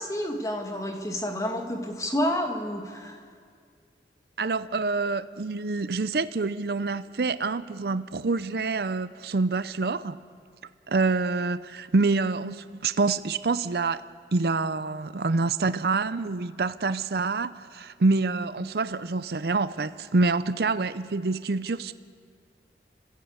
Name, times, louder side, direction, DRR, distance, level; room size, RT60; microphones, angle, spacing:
voice 1, 0.0-3.2, equal, 20° left, 2.1 m, -29 dB
voice 2, 4.4-10.2 10.9-14.0 14.3-21.9, right 3 dB, 60° right, 0.6 m, -26 dB
29.5 x 15.5 x 8.1 m
head